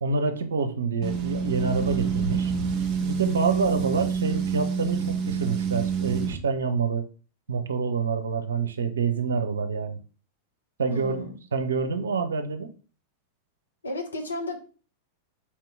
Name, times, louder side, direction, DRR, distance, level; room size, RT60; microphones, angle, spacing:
voice 1, 0.0-2.5 3.0-7.1 7.5-10.0 10.8-12.7, right 5 dB, 70° right, 8 dB, 0.6 m, -27 dB
sound 1, 1.0-6.4, right 6 dB, 35° right, 0.9 m, -27 dB
voice 2, 10.9-11.4 13.8-14.6, left 1 dB, 75° left, 3 dB, 0.9 m, -33 dB
4.5 x 2.8 x 3.5 m, 0.37 s
figure-of-eight pair, 90°, 0 cm